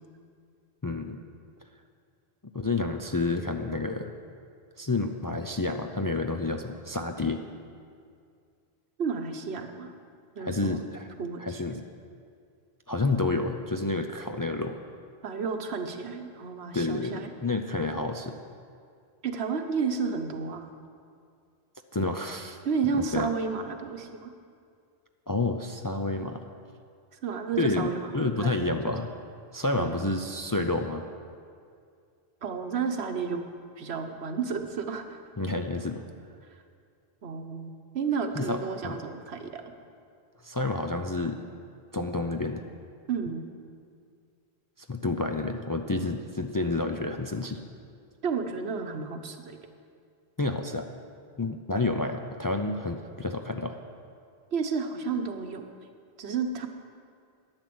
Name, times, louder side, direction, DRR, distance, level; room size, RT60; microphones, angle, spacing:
voice 1, 0.8-1.2 2.5-4.1 4.8-7.4 10.4-11.1 11.4-11.8 12.9-14.8 16.7-18.4 21.9-22.6 23.1-23.3 25.3-26.4 27.6-29.1 29.5-31.0 35.4-36.0 38.4-39.0 40.4-41.4 41.9-42.6 44.9-47.6 50.4-50.9 51.4-53.8, left 2 dB, 30° left, 5 dB, 0.4 m, -29 dB
voice 2, 9.0-9.9 10.4-10.8 11.2-11.6 15.2-17.3 19.2-20.7 22.6-24.3 27.2-28.8 29.8-30.0 32.4-33.4 33.8-35.2 37.2-39.6 43.1-43.5 48.2-49.6 54.5-55.7 56.2-56.7, right 5 dB, 85° right, 6 dB, 1.2 m, -31 dB
11.0 x 9.7 x 7.8 m, 2.3 s
omnidirectional pair, 1.1 m